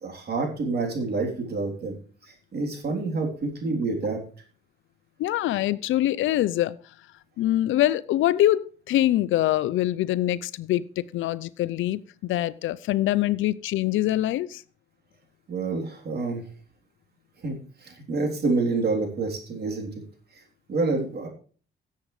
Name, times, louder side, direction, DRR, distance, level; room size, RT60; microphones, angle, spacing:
voice 1, 0.0-2.0 2.5-4.2 15.5-16.4 17.4-19.9 20.7-21.3, right 3 dB, 55° right, 3.5 m, -27 dB
voice 2, 5.2-6.8 7.4-14.6, left 14 dB, 80° left, 0.5 m, -24 dB
17.0 x 7.5 x 3.2 m
cardioid pair, 90°, 20 cm